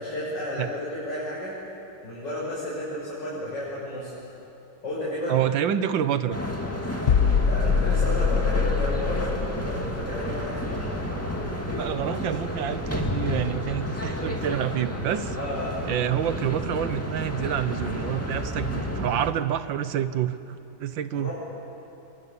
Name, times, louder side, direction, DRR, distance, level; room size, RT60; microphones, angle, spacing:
voice 1, 0.0-1.6 2.0-4.1 4.8-5.4 7.5-10.9 15.4-15.8 18.7-18.8 21.1-21.3, left 1 dB, 60° left, -8 dB, 7.3 m, -32 dB
voice 2, 5.3-6.4 11.7-15.4 15.9-21.3, right 10 dB, 70° right, 12 dB, 1.6 m, -28 dB
sound 1, 6.3-19.3, left 1 dB, 5° left, 2.3 m, -31 dB
sound 2, 7.1-12.8 13.0-13.3, left 6 dB, 75° left, 0.5 m, -25 dB
sound 3, 7.4-12.7, right 7 dB, 55° right, 1.4 m, -39 dB
27.5 x 23.5 x 8.5 m, 2.8 s
omnidirectional pair, 2.2 m